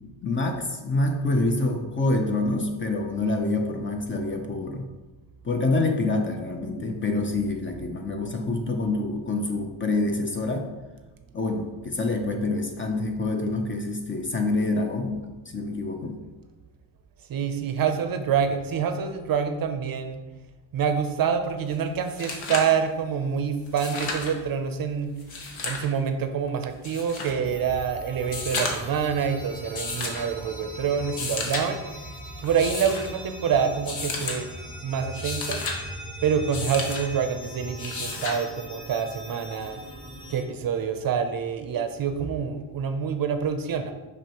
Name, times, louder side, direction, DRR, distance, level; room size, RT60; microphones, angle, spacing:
voice 1, 0.2-4.9 5.4-10.7 11.3-16.2, left 2 dB, 25° left, 4 dB, 0.5 m, -26 dB
voice 2, 17.3-20.2 20.7-25.1 25.6-31.8 32.4-34.5 34.8-35.6 36.2-39.8 40.3-43.9, right 7 dB, 50° right, 8 dB, 0.5 m, -26 dB
sound 1, 21.7-21.8 22.1-22.8 23.7-24.3 25.2-25.9 26.8-27.3 28.2-29.0 29.7-30.2 31.0-31.6 32.4-33.1 33.8-34.4 35.0-35.8 36.5-37.0 37.8-38.4 39.8-39.9, left 3 dB, 90° left, 1.1 m, -32 dB
sound 2, 27.4-40.4, equal, 10° left, 1.3 m, -40 dB
5.9 x 5.4 x 2.9 m, 1.2 s
cardioid pair, 120°, 47 cm